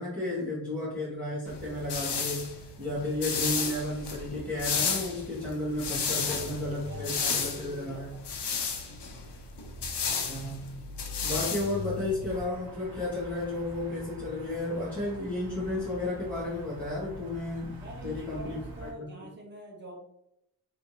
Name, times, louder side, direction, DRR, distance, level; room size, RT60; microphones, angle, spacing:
voice 1, 0.0-8.2 10.3-10.8 11.2-19.3, left 2 dB, 5° left, -12 dB, 1.5 m, -33 dB
sound 1, 1.5-12.4, left 5 dB, 80° left, 0.7 m, -33 dB
voice 2, 2.8-3.4 6.2-8.3 17.8-20.0, right 1 dB, 25° right, -2 dB, 0.9 m, -47 dB
sound 2, 12.3-18.9, right 2 dB, 65° right, 0.8 m, -45 dB
3.3 x 3.0 x 2.8 m, 0.81 s
wide cardioid pair, 175°, 40 cm